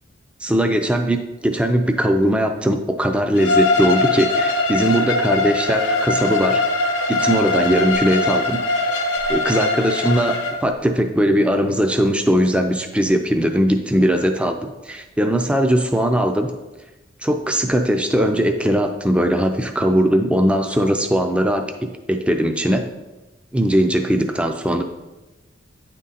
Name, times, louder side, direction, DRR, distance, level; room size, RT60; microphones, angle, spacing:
voice 1, 0.4-6.7 7.1-8.6 9.3-16.5 17.2-22.9 23.5-24.8, equal, 5° right, 6 dB, 0.4 m, -19 dB
Bowed string instrument, 3.4-10.5, left 2 dB, 80° left, 0.9 m, -21 dB
9.7 x 3.7 x 4.1 m, 1.1 s
head